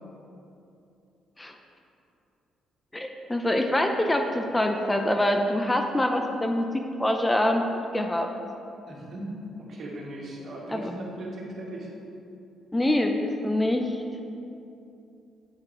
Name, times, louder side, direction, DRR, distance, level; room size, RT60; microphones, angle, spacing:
voice 1, 2.9-6.7 7.0-7.6 7.9-8.3 10.7-10.8 12.7-14.0, left 1 dB, 15° left, 4 dB, 0.6 m, -25 dB
voice 2, 8.9-11.9, right 1 dB, 55° right, -4 dB, 2.0 m, -38 dB
8.2 x 7.9 x 3.4 m, 2.7 s
cardioid pair, 90°, 0 cm